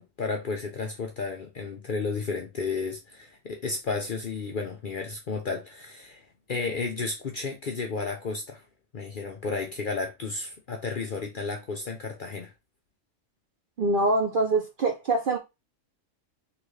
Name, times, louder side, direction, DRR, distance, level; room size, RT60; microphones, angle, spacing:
voice 1, 0.0-8.6 8.9-12.5, left 4 dB, 55° left, 0.6 m, -32 dB
voice 2, 13.8-15.4, right 2 dB, 55° right, 0.6 m, -24 dB
3.8 x 3.0 x 3.2 m
omnidirectional pair, 1.4 m